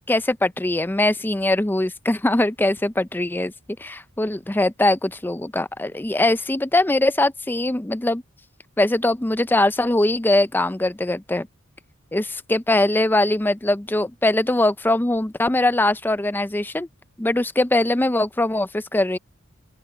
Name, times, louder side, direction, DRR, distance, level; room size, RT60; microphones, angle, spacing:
voice 1, 0.1-3.5 3.8-8.2 8.8-11.5 12.1-16.9 17.2-19.2, left 1 dB, 10° left, 0.5 m, -21 dB
open air
head